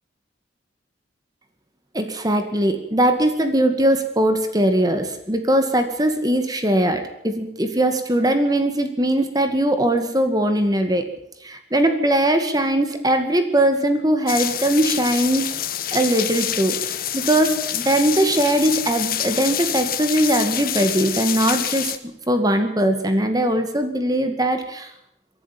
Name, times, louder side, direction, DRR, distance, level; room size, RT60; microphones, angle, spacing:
voice 1, 1.9-11.1 11.4-15.5 15.9-16.8 17.1-21.9 22.3-24.9, right 1 dB, 20° right, 7 dB, 2.1 m, -20 dB
sound 1, 14.3-22.0, left 11 dB, 55° left, 1.3 m, -27 dB
24.0 x 11.5 x 9.2 m, 0.76 s
head